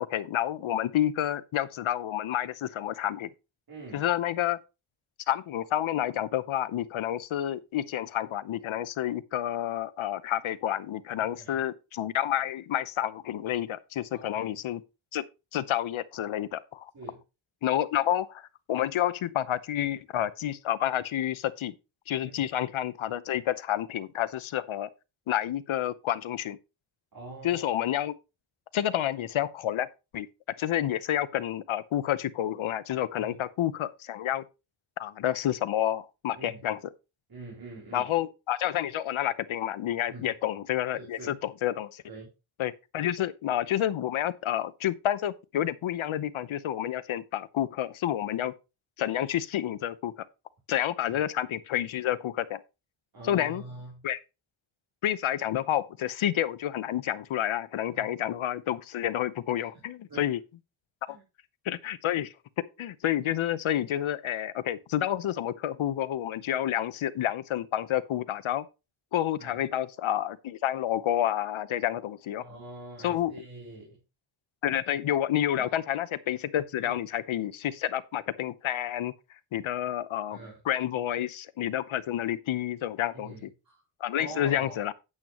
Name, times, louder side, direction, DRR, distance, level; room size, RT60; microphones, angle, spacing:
voice 1, 0.0-3.3 3.9-4.6 5.3-14.8 15.1-15.2 15.5-16.9 17.6-21.7 22.1-24.9 25.3-26.6 27.4-28.1 28.7-29.9 30.1-30.3 30.6-34.4 35.0-36.8 37.9-42.0 42.6-48.5 49.0-50.1 50.7-52.6 53.2-53.6 54.0-54.2 55.0-60.4 61.1-61.2 61.6-62.3 62.8-68.6 69.1-72.4 73.0-73.3 74.6-79.1 79.5-80.4 80.7-83.5 84.0-84.9, left 11 dB, 85° left, 0.8 m, -29 dB
voice 2, 3.7-4.1 11.2-11.6 14.1-14.5 16.9-17.2 22.2-22.4 27.1-27.8 33.2-33.4 36.4-36.6 37.3-38.1 40.1-40.3 40.9-41.3 42.1-42.3 51.1-51.2 53.1-54.1 57.9-58.1 60.1-60.3 61.1-61.2 69.4-69.6 72.4-74.0 75.6-75.7 76.8-76.9 80.3-80.6 83.1-83.8 84.2-84.8, right 2 dB, 45° right, 3.6 m, -44 dB
8.6 x 8.6 x 3.0 m
wide cardioid pair, 165°, 47 cm